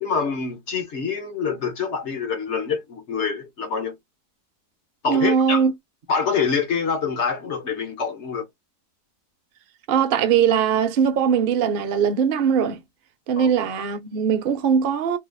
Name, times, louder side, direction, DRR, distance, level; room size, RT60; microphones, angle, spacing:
voice 1, 0.0-3.9 5.0-5.6 6.1-8.5 13.4-13.5, left 5 dB, 50° left, 1.0 m, -25 dB
voice 2, 5.1-5.7 9.9-12.8 13.3-15.2, right 7 dB, 50° right, 0.7 m, -20 dB
3.8 x 2.9 x 2.3 m
omnidirectional pair, 1.7 m